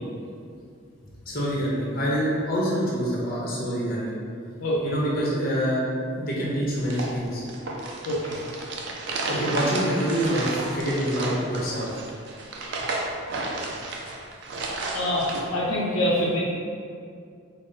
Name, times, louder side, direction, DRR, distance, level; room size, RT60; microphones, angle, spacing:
voice 1, 1.3-4.2 4.8-5.8 6.2-7.4 9.3-11.9, equal, 45° left, -6 dB, 0.8 m, -26 dB
sound 1, 6.8-15.4, right 2 dB, 55° right, 0.4 m, -32 dB
voice 2, 8.1-8.4 14.9-16.4, left 1 dB, 75° left, -5 dB, 0.5 m, -25 dB
3.8 x 2.0 x 3.7 m, 2.3 s
head